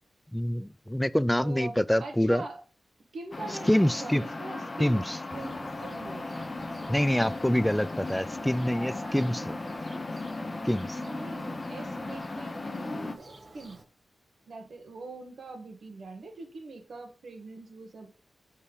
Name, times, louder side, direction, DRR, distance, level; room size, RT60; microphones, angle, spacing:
voice 1, 0.3-2.4 3.7-4.2 4.8-5.2 6.9-9.5 10.6-11.0, equal, 5° left, 0.3 m, -26 dB
voice 2, 1.4-1.7 2.0-2.6 3.1-6.4 11.1-13.8 14.5-18.1, right 2 dB, 70° right, 1.5 m, -43 dB
sound 1, 3.3-13.1, left 2 dB, 30° left, 0.9 m, -36 dB
Thunder, 5.3-13.8, right 2 dB, 40° right, 1.1 m, -49 dB
5.4 x 4.3 x 4.8 m
wide cardioid pair, 90°, 0 cm